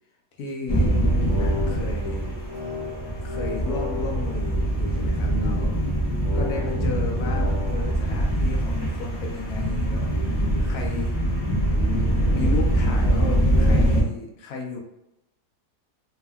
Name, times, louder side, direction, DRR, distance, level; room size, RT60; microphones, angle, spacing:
voice 1, 0.4-2.4 3.2-5.8 6.3-11.2 12.3-14.8, left 4 dB, 75° left, 0 dB, 1.1 m, -34 dB
sound 1, 0.7-14.0, right 1 dB, 45° left, 0.4 m, -23 dB
sound 2, 1.0-5.3 6.2-8.0, left 5 dB, 25° right, 0.6 m, -35 dB
3.4 x 2.1 x 2.3 m, 0.87 s
omnidirectional pair, 1.7 m